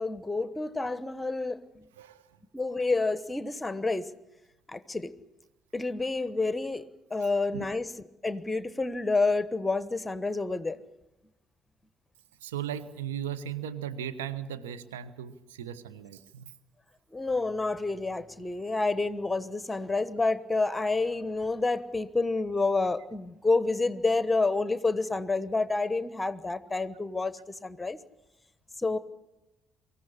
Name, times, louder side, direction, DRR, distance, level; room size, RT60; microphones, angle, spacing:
voice 1, 0.0-1.9 2.5-4.1 4.7-5.1 5.7-6.8 7.1-7.9 8.2-10.8 17.1-28.0 28.8-29.0, left 3 dB, 15° left, 16 dB, 1.2 m, -29 dB
voice 2, 2.0-2.3 7.2-7.3 7.5-7.7 12.4-16.5, right 9 dB, 75° right, 11 dB, 1.1 m, -37 dB
24.0 x 15.0 x 10.0 m, 0.97 s
figure-of-eight pair, 50°, 0 cm